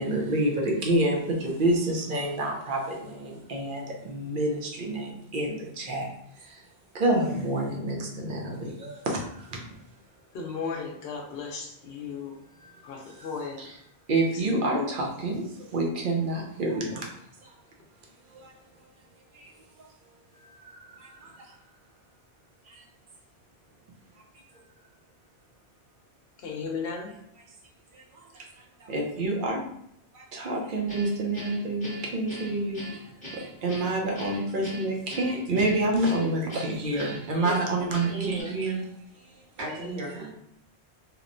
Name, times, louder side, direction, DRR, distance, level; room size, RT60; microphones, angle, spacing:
voice 1, 0.0-6.1 6.4-6.6 6.9-9.6 12.6-12.7 13.1-13.3 13.6-13.7 14.1-17.1 17.4-17.5 18.3-18.5 19.3-19.5 19.8-19.9 20.4-21.5 22.7-22.8 27.9-28.5 28.8-29.6 30.1-32.8 33.3-38.8, right 2 dB, 60° right, -1 dB, 0.7 m, -28 dB
voice 2, 10.3-12.3 12.8-13.6 14.3-14.9 26.4-27.1, left 5 dB, 70° left, 1 dB, 0.8 m, -35 dB
Guitar, 30.9-38.4, equal, 10° left, 0.9 m, -41 dB
voice 3, 37.9-38.7 39.6-40.3, right 1 dB, 85° right, -6 dB, 1.3 m, -35 dB
2.9 x 2.1 x 2.5 m, 0.75 s
omnidirectional pair, 1.1 m